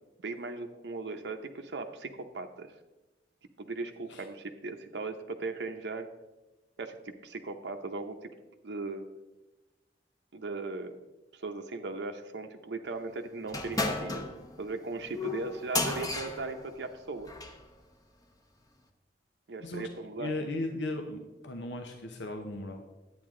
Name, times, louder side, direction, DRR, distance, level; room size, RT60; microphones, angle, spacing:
voice 1, 0.2-2.7 3.6-6.1 6.8-8.3 8.6-9.1 10.3-11.0 11.3-14.2 14.6-17.3 19.5-20.3, right 3 dB, 75° right, 4 dB, 0.7 m, -38 dB
sound 1, 13.5-17.6, left 2 dB, 20° left, 0.8 m, -34 dB
voice 2, 19.6-19.9 20.2-22.8, left 2 dB, 85° left, 4 dB, 0.9 m, -36 dB
10.5 x 8.9 x 3.7 m, 1.1 s
head